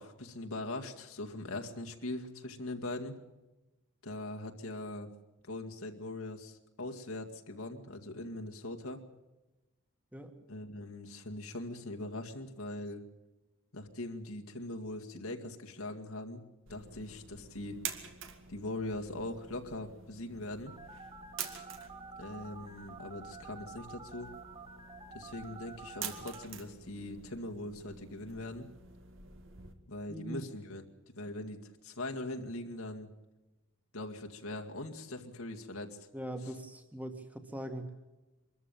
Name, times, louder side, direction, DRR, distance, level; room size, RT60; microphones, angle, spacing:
voice 1, 0.0-3.2 4.0-5.1 5.4-9.0 10.5-13.0 13.7-16.4 16.7-17.8 18.5-20.7 21.4-21.7 22.2-24.3 25.1-28.7 29.9-30.8 31.1-33.1 33.9-36.1, left 2 dB, 80° left, 3 dB, 2.2 m, -41 dB
sound 1, 16.7-29.7, right 7 dB, 60° right, 2.1 m, -48 dB
Telephone, 20.7-26.4, right 4 dB, 25° right, 3.1 m, -49 dB
voice 2, 30.1-30.5 36.1-38.0, right 1 dB, 5° right, 7 dB, 1.9 m, -41 dB
24.5 x 14.0 x 9.1 m, 1.0 s
head